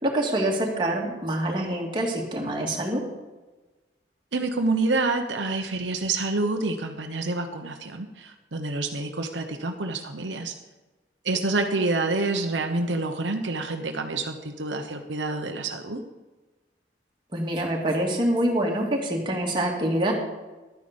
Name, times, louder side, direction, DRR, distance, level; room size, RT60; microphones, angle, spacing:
voice 1, 0.0-3.0 17.3-20.1, right 1 dB, 25° right, -2 dB, 2.4 m, -25 dB
voice 2, 4.3-10.5 11.2-16.0, right 3 dB, 85° right, 4 dB, 1.0 m, -27 dB
12.0 x 9.5 x 5.2 m, 1.2 s
head